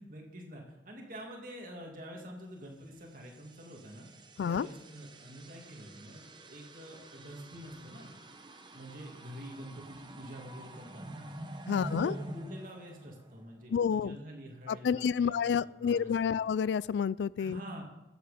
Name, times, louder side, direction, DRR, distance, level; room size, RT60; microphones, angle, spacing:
voice 1, 0.0-4.1 4.4-8.1 8.7-11.3 11.7-16.4 17.4-17.8, equal, 50° right, 0 dB, 2.4 m, -47 dB
sound 1, 3.0-13.7, right 1 dB, 25° right, 0.8 m, -47 dB
voice 2, 11.7-12.2 13.7-14.2 14.7-17.6, left 7 dB, 80° left, 21 dB, 0.3 m, -29 dB
14.0 x 8.0 x 5.0 m, 1.0 s
head